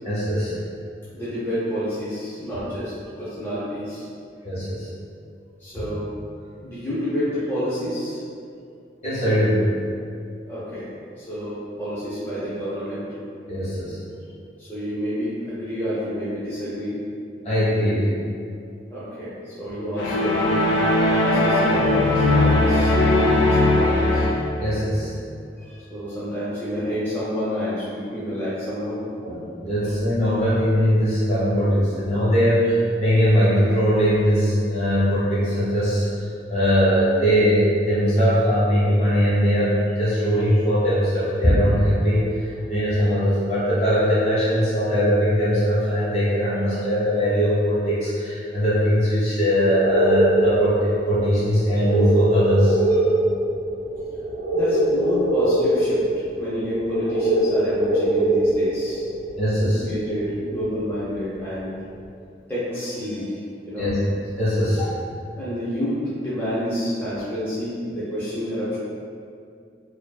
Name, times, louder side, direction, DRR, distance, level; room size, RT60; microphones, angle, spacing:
voice 1, 0.0-0.5 4.4-4.9 9.0-9.7 13.5-14.0 17.4-18.1 24.6-25.1 29.2-52.8 59.4-59.8 63.8-63.9 64.4-64.8, equal, 35° left, -10 dB, 0.9 m, -20 dB
voice 2, 1.1-2.9 3.2-4.1 5.6-6.1 6.6-8.2 10.5-13.1 14.6-17.0 18.9-20.4 20.8-24.3 25.6-29.0 29.8-29.9 32.1-32.3 52.9-53.2 54.5-56.0 56.4-59.0 59.6-61.7 62.5-63.4 63.7-63.9 64.8-64.9 65.3-68.8, equal, 10° left, -12 dB, 0.5 m, -29 dB
sound 1, 20.0-24.6, left 2 dB, 90° left, 0.3 m, -19 dB
sound 2, 49.7-60.7 61.2-61.3, right 1 dB, 55° right, 0.4 m, -23 dB
2.7 x 2.4 x 2.2 m, 2.4 s
head